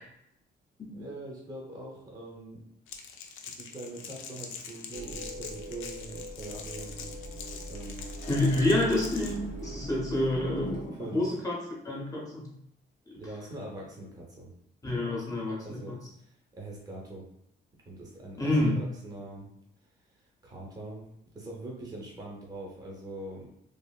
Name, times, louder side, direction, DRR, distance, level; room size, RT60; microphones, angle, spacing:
voice 1, 0.9-2.6 3.5-7.3 7.7-8.1 11.0-11.3 13.1-14.5 15.6-17.2 17.9-19.5 20.4-21.1 21.3-23.5, right 2 dB, 20° right, -2 dB, 0.6 m, -43 dB
Crackle, 2.9-9.4, left 6 dB, 85° left, 0.4 m, -44 dB
sound 1, 3.8-11.5, left 1 dB, 55° left, 0.7 m, -46 dB
sound 2, 4.9-10.8, right 1 dB, 65° right, 0.4 m, -42 dB
voice 2, 8.3-12.5 14.8-16.0 18.4-18.8, left 1 dB, 20° left, -4 dB, 0.6 m, -28 dB
3.1 x 2.4 x 2.2 m, 0.75 s
cardioid pair, 175°, 20 cm